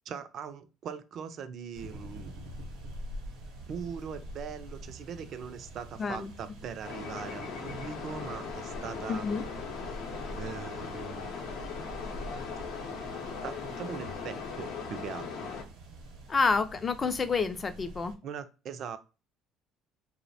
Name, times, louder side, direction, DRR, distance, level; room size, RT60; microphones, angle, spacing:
voice 1, 0.1-2.3 3.7-9.3 10.3-11.3 13.4-15.5 18.2-19.0, right 7 dB, 55° right, 10 dB, 0.3 m, -41 dB
sound 1, 1.7-18.1, equal, 90° right, 0.7 m, -45 dB
voice 2, 6.0-6.3 9.1-9.4 16.3-18.1, left 4 dB, 30° left, 10 dB, 0.3 m, -28 dB
sound 2, 6.8-15.6, left 5 dB, 75° left, 0.6 m, -39 dB
2.7 x 2.0 x 2.6 m, 0.32 s
cardioid pair, 110°, 0 cm